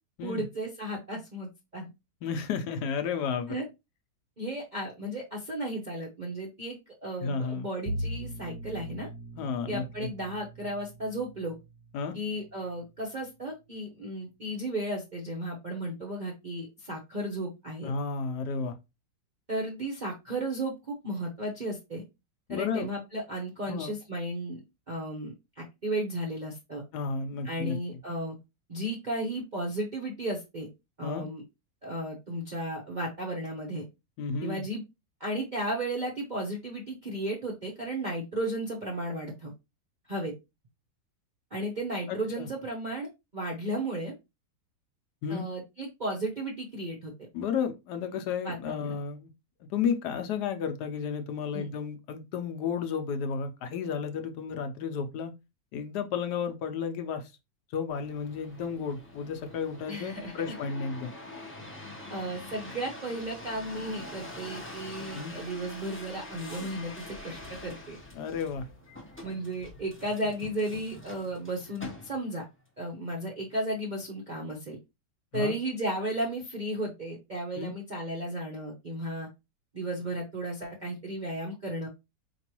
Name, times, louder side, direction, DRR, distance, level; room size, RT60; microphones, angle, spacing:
voice 1, 0.2-1.9 3.5-3.6 4.4-9.1 9.7-11.5 12.1-17.9 19.5-22.0 22.5-24.6 24.9-26.8 27.4-28.4 28.7-30.7 31.0-31.4 31.8-33.8 34.4-34.8 35.2-39.5 40.1-40.3 41.5-44.1 45.3-47.3 48.4-49.0 51.5-51.7 59.9-60.5 62.1-68.0 69.2-72.4 72.8-74.8 75.3-79.3 79.7-81.9, right 1 dB, 45° right, 0.5 m, -34 dB
voice 2, 2.2-3.5 7.2-7.7 9.3-9.8 11.9-12.2 17.8-18.7 22.5-22.9 23.7-23.9 26.9-27.8 31.0-31.2 34.2-34.7 42.1-42.5 45.2-45.4 47.3-49.3 49.7-55.3 55.7-57.3 57.7-61.1 65.1-65.4 68.1-68.7 75.3-75.5 77.6-77.7, left 6 dB, 75° left, 1.1 m, -32 dB
Bowed string instrument, 7.8-12.9, right 1 dB, 75° right, 1.1 m, -40 dB
sound 1, 57.9-72.4 73.0-73.6, left 1 dB, 15° left, 0.4 m, -45 dB
4.5 x 3.0 x 2.9 m
omnidirectional pair, 1.9 m